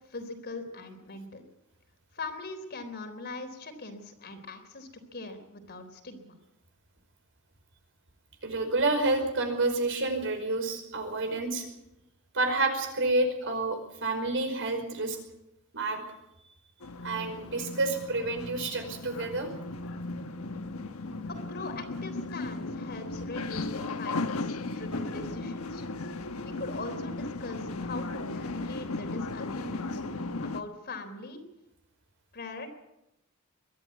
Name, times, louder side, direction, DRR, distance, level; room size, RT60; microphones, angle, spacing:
voice 1, 0.1-1.4 2.1-6.2 21.3-25.9 26.4-31.4 32.3-32.7, left 3 dB, 50° left, 7 dB, 3.7 m, -41 dB
voice 2, 8.4-11.6 12.3-15.2 15.7-16.0 17.0-19.5, right 2 dB, 60° right, 5 dB, 5.1 m, -29 dB
sound 1, 16.8-30.6, left 2 dB, 70° left, 1.3 m, -36 dB
22.5 x 13.0 x 9.4 m, 0.91 s
head